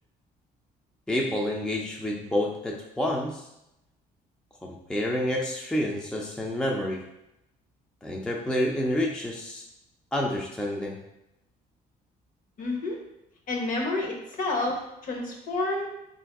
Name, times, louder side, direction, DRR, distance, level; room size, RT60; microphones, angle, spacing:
voice 1, 1.1-3.5 4.6-7.1 8.0-9.6 10.1-11.0, left 1 dB, 5° left, -1 dB, 0.4 m, -29 dB
voice 2, 12.6-13.0 13.5-15.9, left 2 dB, 50° left, 1 dB, 1.0 m, -29 dB
3.8 x 2.6 x 3.4 m, 0.87 s
cardioid pair, 110°, 17 cm